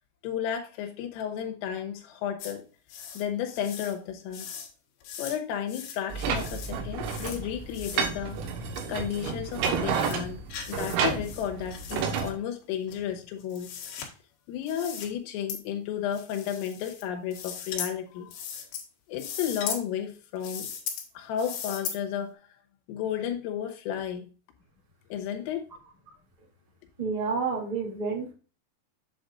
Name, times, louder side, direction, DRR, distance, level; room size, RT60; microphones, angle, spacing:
voice 1, 0.2-2.6 3.2-4.5 5.2-8.4 8.9-13.7 14.5-18.3 19.1-20.7 21.2-22.4 22.9-24.2 25.1-25.7, left 9 dB, 85° left, 3 dB, 3.6 m, -33 dB
sound 1, 2.4-2.5 2.9-3.2 3.6-3.9 4.3-4.7 5.0-5.4 5.7-6.0 6.3-6.7 7.0-7.4 7.7-8.1 8.7-8.8 9.3-9.4 9.8-10.2 10.5-11.0 11.2-12.0 12.9-14.1 14.7-15.1 15.5-15.6 16.1-17.0 17.3-17.9 18.3-18.8 19.1-19.8 20.4-21.1 21.4-22.0, left 7 dB, 65° left, 3.5 m, -38 dB
sound 2, 6.1-12.3, right 6 dB, 85° right, 3.9 m, -31 dB
voice 2, 27.0-28.3, right 4 dB, 35° right, -2 dB, 0.6 m, -29 dB
8.8 x 8.2 x 2.5 m, 0.35 s
omnidirectional pair, 5.8 m